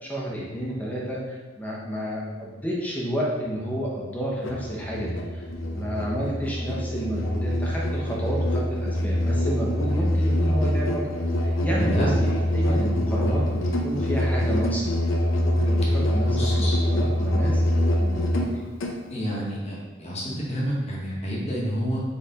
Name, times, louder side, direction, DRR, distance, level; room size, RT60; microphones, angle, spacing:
voice 1, 0.0-11.0 11.4-14.9 15.5-17.7 18.0-18.6, equal, 10° left, -4 dB, 0.7 m, -30 dB
Musical instrument, 4.4-19.0, left 1 dB, 80° left, 0.6 m, -24 dB
voice 2, 11.8-12.1 16.1-16.7 19.1-22.0, equal, 35° left, -4 dB, 1.0 m, -29 dB
4.3 x 3.1 x 3.9 m, 1.3 s
head